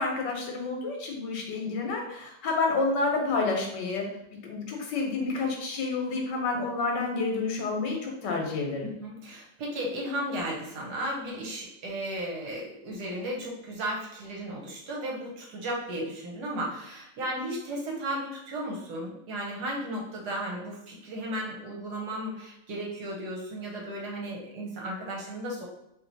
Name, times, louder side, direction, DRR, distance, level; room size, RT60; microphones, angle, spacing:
voice 1, 0.0-4.1 4.4-8.9, left 3 dB, 65° left, 1 dB, 1.5 m, -29 dB
voice 2, 8.8-25.6, right 1 dB, 65° right, -2 dB, 1.4 m, -35 dB
3.1 x 3.0 x 4.0 m, 0.84 s
omnidirectional pair, 2.1 m